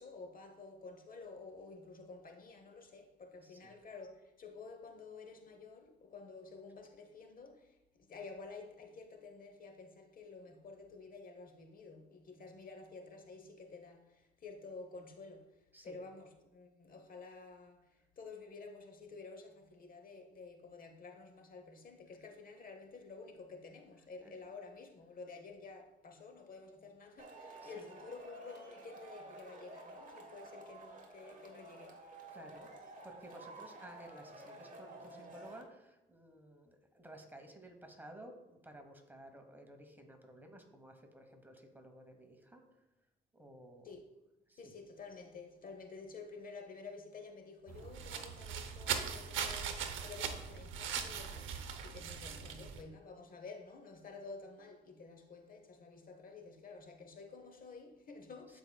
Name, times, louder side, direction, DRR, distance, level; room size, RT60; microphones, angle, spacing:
voice 1, 0.0-32.1 43.8-44.1 44.6-58.6, left 4 dB, 45° left, 0.9 m, -51 dB
voice 2, 3.4-3.7 15.7-16.0 22.1-22.3 24.0-24.4 27.6-27.9 32.3-32.7 33.0-42.6 43.3-44.0 44.5-44.7 58.5-58.6, right 1 dB, 10° right, 1.1 m, -55 dB
Male speech man speaking / Shout / Clapping, 27.2-35.6, right 2 dB, 40° right, 1.2 m, -52 dB
sound 1, 47.7-52.8, right 7 dB, 75° right, 0.8 m, -40 dB
12.0 x 4.8 x 2.3 m
cardioid pair, 90°, 20 cm